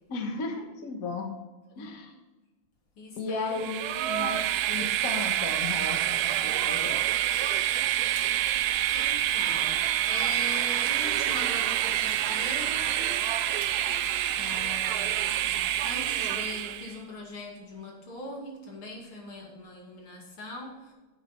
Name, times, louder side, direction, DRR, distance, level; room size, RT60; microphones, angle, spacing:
voice 1, 0.1-1.3 1.8-2.2 3.2-7.0, left 4 dB, 45° left, 3 dB, 1.6 m, -35 dB
voice 2, 3.0-3.6 3.9-4.4 8.2-8.6 8.9-13.2 13.6-13.7 14.4-20.9, left 2 dB, 90° left, -1 dB, 3.2 m, -41 dB
Train, 3.5-16.9, right 12 dB, 85° right, 0.8 m, -27 dB
10.5 x 7.5 x 4.3 m, 1.2 s
omnidirectional pair, 2.2 m